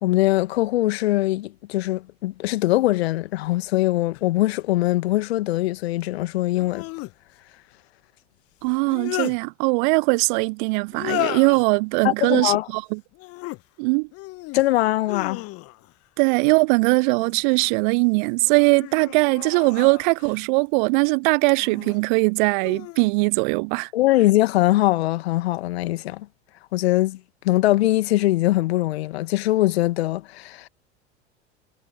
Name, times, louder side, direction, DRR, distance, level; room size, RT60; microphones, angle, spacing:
voice 1, 0.0-6.9 12.0-12.7 14.5-15.4 23.9-26.3 26.7-27.2 27.4-30.7, left 17 dB, 65° left, 2.1 m, -22 dB
sound 1, 4.1-4.2 6.5-7.1 8.7-9.4 10.9-11.6 13.1-13.6 14.1-14.6 15.0-15.9 17.2-17.8 18.4-20.4 21.5-22.0 22.6-23.1, left 22 dB, 40° left, 1.1 m, -34 dB
voice 2, 8.6-13.0 13.8-14.1 16.2-23.9, right 32 dB, 45° right, 0.5 m, -20 dB
figure-of-eight pair, 75°, 35 cm